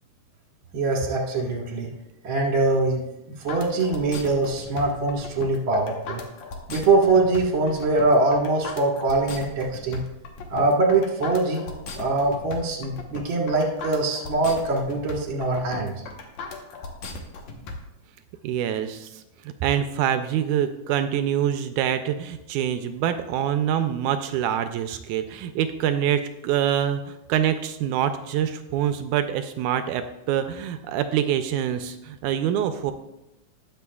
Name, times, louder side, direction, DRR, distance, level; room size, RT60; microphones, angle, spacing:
voice 1, 0.7-1.9 2.2-3.0 3.4-6.2 6.7-10.0 10.5-11.6 11.9-16.0, right 3 dB, 45° right, 0 dB, 1.8 m, -23 dB
sound 1, 3.5-17.7, left 4 dB, 65° left, 2.1 m, -37 dB
voice 2, 18.4-19.2 19.6-32.9, right 10 dB, 80° right, 9 dB, 1.9 m, -25 dB
19.5 x 6.9 x 2.3 m, 0.90 s
omnidirectional pair, 3.8 m